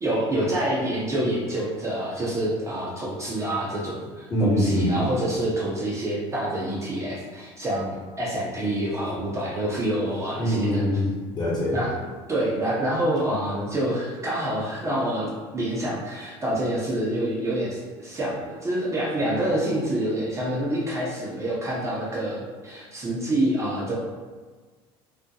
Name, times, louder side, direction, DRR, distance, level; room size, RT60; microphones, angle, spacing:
voice 1, 0.0-10.8 11.7-11.9 12.3-23.9, right 1 dB, 20° right, -6 dB, 0.6 m, -27 dB
voice 2, 4.3-5.0 10.4-11.8, equal, 30° left, -7 dB, 1.0 m, -23 dB
2.3 x 2.1 x 2.7 m, 1.4 s
supercardioid pair, 95°, 13 cm